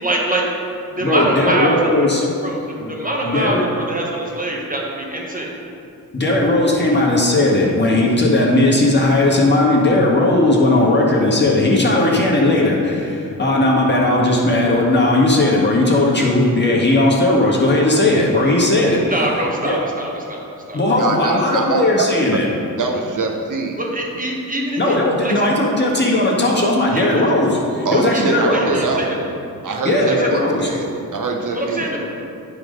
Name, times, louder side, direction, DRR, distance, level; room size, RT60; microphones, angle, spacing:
voice 1, 0.0-0.5 0.9-2.1 2.4-5.5 19.1-21.1 23.8-25.5 26.9-27.2 28.1-29.2 30.2-30.3 31.5-32.0, right 1 dB, 20° right, -2 dB, 1.5 m, -24 dB
voice 2, 1.0-2.2 2.8-2.9 3.2-3.6 6.1-19.0 19.6-19.8 20.7-22.5 24.8-28.7 29.9-30.7 31.8-31.9, left 2 dB, 30° left, -4 dB, 1.8 m, -17 dB
voice 3, 21.0-22.4 22.8-23.8 24.8-24.9 27.8-29.2 29.6-30.9 31.1-32.0, right 3 dB, 55° right, 2 dB, 1.1 m, -23 dB
9.5 x 4.0 x 5.3 m, 2.6 s
cardioid pair, 60°, 36 cm